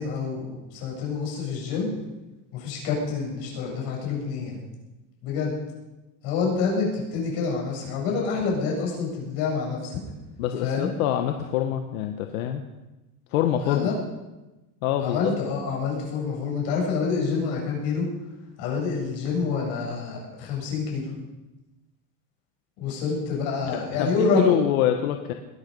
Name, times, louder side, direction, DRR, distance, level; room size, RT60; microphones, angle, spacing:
voice 1, 0.0-1.9 2.5-4.6 5.2-5.5 6.2-10.0 10.6-10.9 13.6-13.9 15.0-18.1 18.6-21.1 22.8-24.5, left 5 dB, 60° left, -2 dB, 7.9 m, -27 dB
voice 2, 10.4-12.6 13.3-14.0 14.8-15.3 23.7-25.3, left 11 dB, 90° left, 5 dB, 1.4 m, -25 dB
21.0 x 12.0 x 5.4 m, 1.1 s
supercardioid pair, 150°, 41 cm